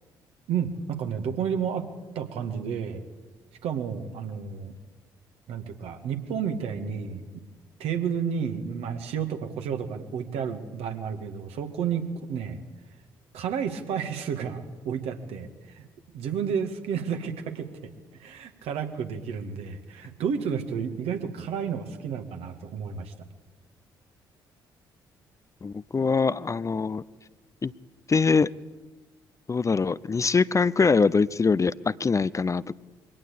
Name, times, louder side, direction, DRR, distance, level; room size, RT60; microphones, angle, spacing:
voice 1, 0.5-1.9 2.2-3.1 3.6-4.7 5.5-7.4 7.8-12.6 13.3-15.9 16.1-23.1, right 7 dB, 65° right, 6 dB, 2.1 m, -31 dB
voice 2, 25.6-27.0 27.6-27.7 28.1-28.5 29.5-32.7, left 4 dB, 30° left, 18 dB, 0.7 m, -23 dB
22.5 x 17.5 x 8.6 m, 1.2 s
figure-of-eight pair, 45°, 11 cm